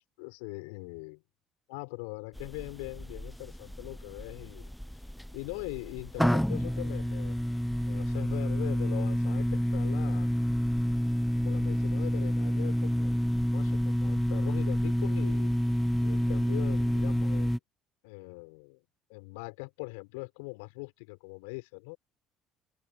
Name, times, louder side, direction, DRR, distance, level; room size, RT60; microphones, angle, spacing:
voice 1, 0.2-1.2 1.7-4.7 5.3-7.5 7.9-10.3 11.4-13.2 13.5-15.5 16.0-17.6 18.0-18.8 19.1-22.0, left 31 dB, 70° left, 5.3 m, -41 dB
sound 1, 2.4-17.6, equal, ahead, 0.5 m, -29 dB
open air
hypercardioid pair, 60°, 0 cm